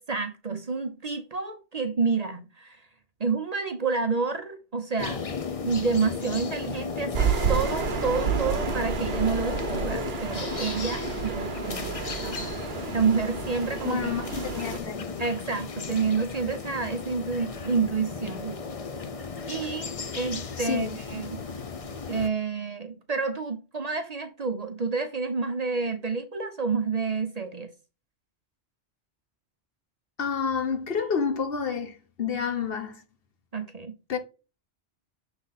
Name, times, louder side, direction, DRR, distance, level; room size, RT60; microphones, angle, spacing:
voice 1, 0.0-2.8 3.2-5.2 5.6-12.5 12.9-14.1 15.2-18.6 19.5-21.4 22.1-27.7 33.5-33.9, right 5 dB, 40° right, 0.8 m, -29 dB
sound 1, 5.0-22.3, left 5 dB, 40° left, 0.7 m, -35 dB
sound 2, 7.1-14.8, right 6 dB, 65° right, 1.0 m, -30 dB
voice 2, 13.8-15.0 20.6-21.0 30.2-33.0 34.1-34.2, left 6 dB, 60° left, 1.2 m, -29 dB
6.5 x 4.0 x 4.0 m
omnidirectional pair, 1.1 m